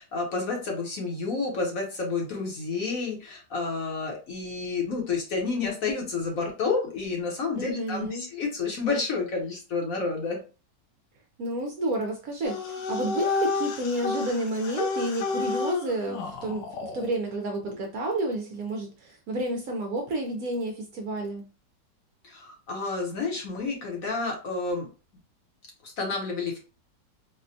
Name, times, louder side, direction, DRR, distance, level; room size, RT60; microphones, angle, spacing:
voice 1, 0.0-10.4 22.2-24.9 25.8-26.6, left 4 dB, 60° left, 0 dB, 1.2 m, -30 dB
voice 2, 7.5-8.2 11.4-21.4, right 1 dB, 65° right, 2 dB, 0.9 m, -30 dB
sound 1, 12.4-17.1, left 4 dB, 90° left, 1.3 m, -31 dB
4.2 x 2.1 x 2.6 m, 0.33 s
omnidirectional pair, 1.9 m